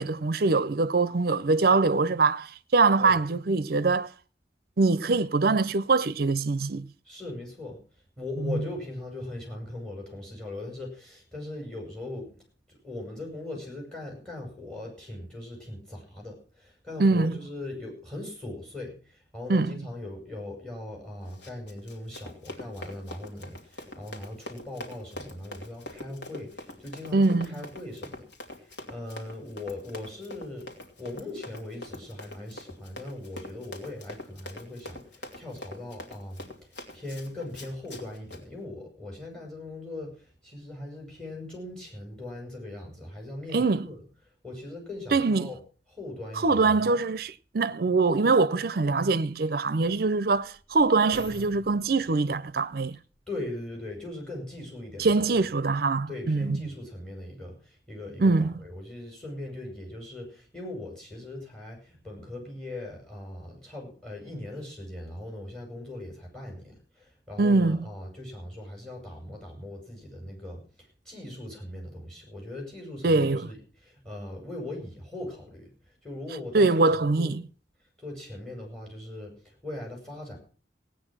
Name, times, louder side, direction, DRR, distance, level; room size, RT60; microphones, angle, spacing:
voice 1, 0.0-4.1 4.8-6.9 8.4-8.6 17.0-17.4 19.5-19.8 27.1-27.5 43.5-43.9 45.1-45.5 46.4-53.0 55.0-56.6 58.2-58.5 67.4-67.8 73.0-73.5 76.5-77.4, right 3 dB, 55° right, 0.6 m, -23 dB
voice 2, 7.0-7.8 8.2-12.3 12.7-28.2 28.5-30.7 31.0-36.5 36.9-44.0 44.4-45.6 45.9-46.9 53.3-55.3 56.1-75.7 76.0-77.4 78.0-80.4, left 2 dB, 5° left, 5.9 m, -40 dB
Run, 21.2-38.4, left 1 dB, 80° left, 2.8 m, -44 dB
sound 1, 48.1-48.2 48.9-54.2 54.9-55.0, right 1 dB, 30° left, 3.8 m, -50 dB
16.5 x 9.4 x 6.0 m
head